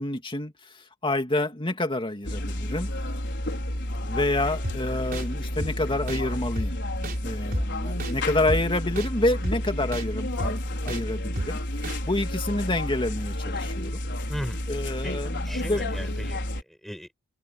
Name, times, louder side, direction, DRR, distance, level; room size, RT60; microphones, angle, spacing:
voice 1, 0.0-2.9 4.0-6.8 7.2-10.6 10.8-11.6 12.0-14.0 14.7-15.9, left 2 dB, 25° left, 2.4 m, -28 dB
sound 1, 2.2-16.6, left 1 dB, 55° left, 5.3 m, -31 dB
sound 2, 4.6-4.8 5.1-5.2 5.6-5.7 6.1-6.2 6.6-6.7 7.0-7.2 7.5-7.6 8.0-8.1 8.5-8.6 9.0-9.1 9.4-9.6 9.9-10.0 10.4-10.5 10.9-11.0 11.4-11.5 11.8-12.0, right 1 dB, 45° right, 3.4 m, -30 dB
voice 2, 14.3-14.7 15.0-15.1 15.5-17.1, equal, ahead, 5.3 m, -37 dB
head